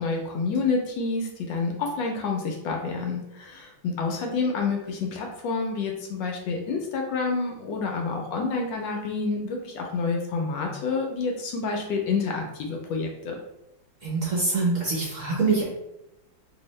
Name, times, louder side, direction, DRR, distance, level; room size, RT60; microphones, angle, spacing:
voice 1, 0.0-13.4, left 4 dB, 75° left, 2 dB, 1.2 m, -28 dB
voice 2, 14.0-15.6, right 3 dB, 55° right, -4 dB, 0.9 m, -24 dB
3.3 x 2.7 x 3.1 m, 0.86 s
omnidirectional pair, 2.1 m